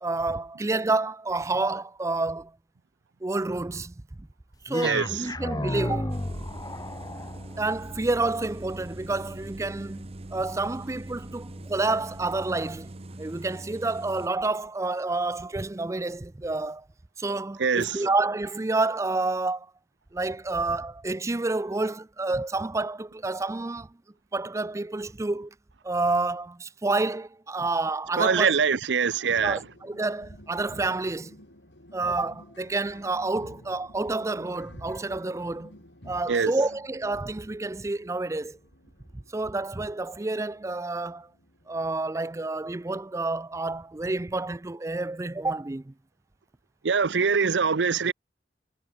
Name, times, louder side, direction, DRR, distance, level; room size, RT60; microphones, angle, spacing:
voice 1, 0.0-2.5 3.2-4.3 4.6-6.2 7.6-12.9 13.2-16.8 17.2-19.7 20.1-23.9 24.3-25.5 25.8-28.5 29.4-31.4 31.9-35.7 36.1-38.6 39.3-41.3 41.7-45.9, right 2 dB, 15° right, 0.4 m, -29 dB
sound 1, 4.7-12.9, left 1 dB, 20° left, 1.7 m, -36 dB
voice 2, 4.8-5.2 17.6-18.0 28.2-29.6 36.3-36.5 46.8-48.1, right 5 dB, 90° right, 0.7 m, -23 dB
sound 2, 6.1-14.3, right 1 dB, 35° right, 1.0 m, -42 dB
sound 3, 29.4-42.0, left 1 dB, 90° left, 6.6 m, -51 dB
head